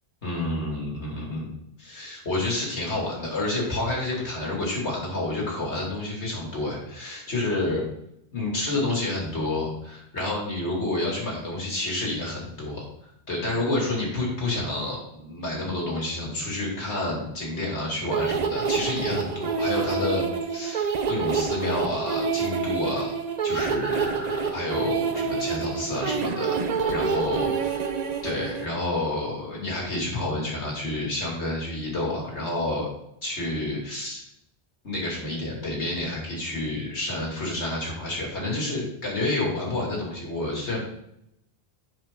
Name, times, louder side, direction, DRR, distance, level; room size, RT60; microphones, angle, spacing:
voice 1, 0.2-1.5 1.8-7.8 8.3-20.2 20.5-23.1 23.4-26.6 26.9-27.9 28.2-32.9 33.2-34.3 34.8-40.8, left 2 dB, 90° left, -3 dB, 2.7 m, -29 dB
sound 1, 18.1-28.7, right 5 dB, 45° right, 0.6 m, -27 dB
7.6 x 5.7 x 3.6 m, 0.77 s
omnidirectional pair, 1.1 m